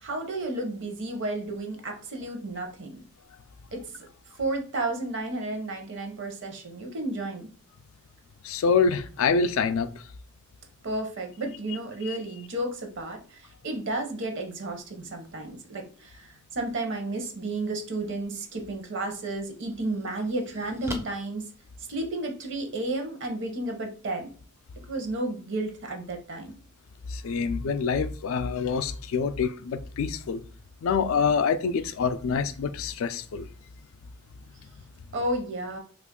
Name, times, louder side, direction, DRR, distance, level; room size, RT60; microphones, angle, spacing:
voice 1, 0.0-3.0 3.7-4.1 4.4-7.5 10.8-21.4 21.9-24.3 24.9-26.5 35.1-35.8, right 2 dB, 60° right, 0.8 m, -32 dB
voice 2, 8.4-9.9 12.1-12.2 27.1-30.4 30.8-33.4, left 5 dB, 65° left, 0.3 m, -26 dB
sound 1, 19.4-22.4, right 1 dB, 10° right, 0.4 m, -43 dB
2.9 x 2.5 x 3.7 m
head